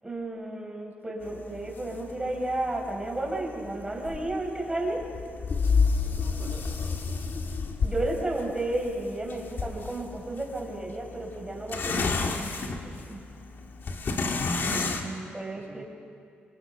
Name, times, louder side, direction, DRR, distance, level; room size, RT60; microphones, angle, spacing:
voice 1, 0.0-5.0 7.8-13.2 14.6-15.8, right 2 dB, 15° right, 0 dB, 6.0 m, -33 dB
sound 1, 1.2-15.1, left 4 dB, 60° left, 2.2 m, -31 dB
voice 2, 5.9-7.7 14.5-14.8 15.5-15.8, right 4 dB, 60° right, -6 dB, 3.8 m, -47 dB
28.0 x 24.5 x 6.0 m, 2.4 s
cardioid pair, 70°, 4 cm